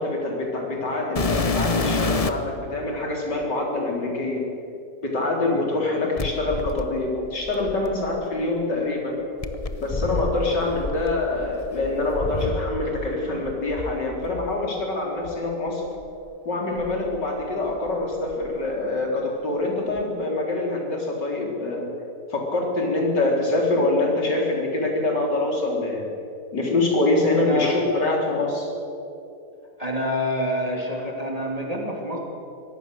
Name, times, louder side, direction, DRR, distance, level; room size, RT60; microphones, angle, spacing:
voice 1, 0.0-4.4 5.0-9.2 9.8-15.8 16.5-21.9 22.3-26.1 26.5-28.7, left 2 dB, 90° left, -1 dB, 4.5 m, -25 dB
sound 1, 1.1-2.5 3.4-3.5 6.2-8.2 9.4-13.1 13.4-14.5 15.2-15.4 16.0-16.1 16.8-17.9 18.1-18.6 20.0-20.1, left 3 dB, 30° left, 0.7 m, -29 dB
voice 2, 27.3-27.8 29.8-32.2, equal, 20° right, -1 dB, 2.8 m, -27 dB
24.0 x 17.5 x 6.7 m, 2.7 s
omnidirectional pair, 1.8 m